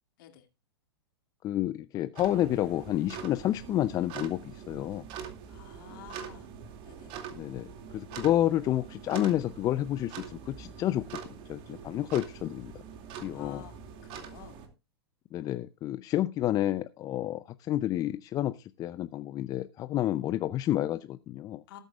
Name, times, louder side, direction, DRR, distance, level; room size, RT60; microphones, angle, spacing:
voice 1, 1.4-5.1 7.3-12.7 13.2-13.6 15.3-21.6, left 13 dB, 25° left, 0.5 m, -30 dB
sound 1, 2.1-14.7, right 7 dB, 40° right, 2.4 m, -44 dB
voice 2, 5.5-6.5 6.8-7.1 13.3-13.7 14.0-14.6 21.7-21.8, left 11 dB, 55° left, 2.3 m, -49 dB
19.5 x 9.0 x 2.4 m
figure-of-eight pair, 105°, 14 cm